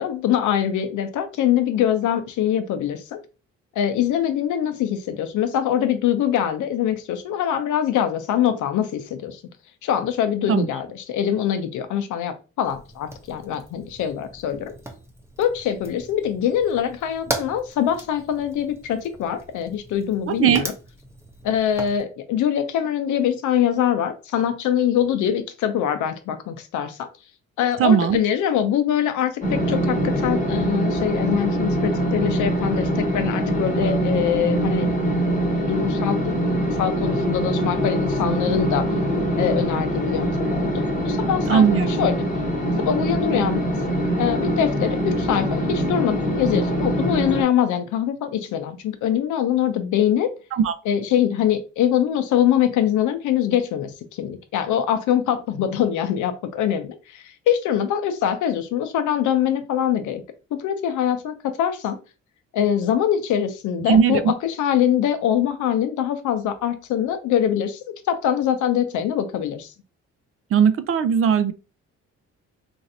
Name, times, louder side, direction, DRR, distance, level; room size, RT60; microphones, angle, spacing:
voice 1, 0.0-3.2 3.8-9.4 9.8-14.7 15.4-20.7 21.4-27.1 27.6-35.2 35.6-36.5 36.8-38.9 39.4-40.7 41.0-42.2 42.8-43.6 44.2-50.3 50.9-60.2 60.6-62.0 62.5-69.7, left 9 dB, 80° left, 0.6 m, -23 dB
Fire, 12.6-22.0, right 1 dB, 10° right, 0.7 m, -38 dB
voice 2, 20.3-20.6 27.8-28.2 41.5-41.9 50.5-50.7 63.9-64.3 70.5-71.5, right 7 dB, 50° right, 0.4 m, -18 dB
sound 1, 29.4-47.4, equal, 25° left, 0.9 m, -23 dB
3.1 x 2.6 x 2.6 m
cardioid pair, 90°, 30 cm